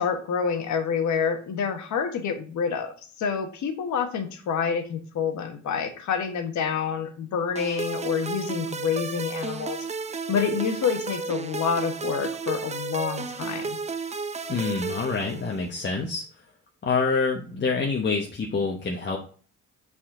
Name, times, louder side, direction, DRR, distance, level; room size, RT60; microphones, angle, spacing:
voice 1, 0.0-9.8 10.3-13.8, left 6 dB, 70° left, 6 dB, 1.4 m, -28 dB
sound 1, 7.6-15.8, right 4 dB, 25° right, 0.5 m, -33 dB
voice 2, 14.5-16.2 16.8-19.2, left 4 dB, 35° left, -1 dB, 1.1 m, -26 dB
7.5 x 4.2 x 3.8 m, 0.41 s
cardioid pair, 90°, 30 cm